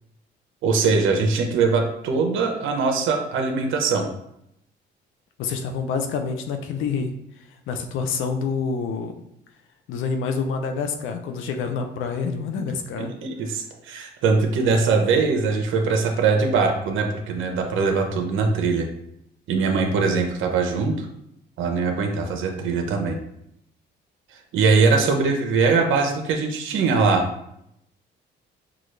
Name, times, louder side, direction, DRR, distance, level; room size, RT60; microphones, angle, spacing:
voice 1, 0.6-4.1 12.6-12.7 13.0-18.9 19.5-21.1 21.6-23.2 24.5-27.2, right 4 dB, 80° right, 4 dB, 0.8 m, -21 dB
voice 2, 5.4-7.1 7.7-9.1 9.9-13.1, left 5 dB, 85° left, 5 dB, 0.6 m, -27 dB
6.0 x 2.4 x 3.2 m, 0.77 s
cardioid pair, 90°, 20 cm